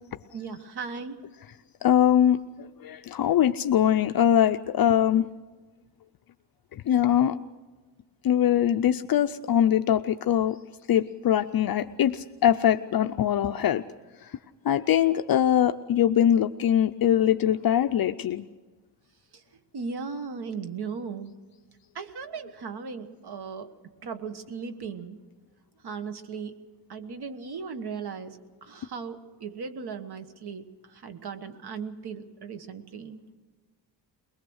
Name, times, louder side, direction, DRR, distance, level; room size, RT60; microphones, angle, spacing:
voice 1, 0.3-1.2 19.7-21.3 21.9-23.7 24.0-25.2 25.8-26.6 26.9-30.6 31.0-33.2, right 5 dB, 70° right, 9 dB, 1.4 m, -37 dB
voice 2, 1.8-5.3 6.9-7.4 8.2-10.6 10.9-13.8 14.7-18.5, left 10 dB, 60° left, 8 dB, 0.5 m, -22 dB
22.0 x 20.5 x 6.3 m, 1.3 s
wide cardioid pair, 150°, 40 cm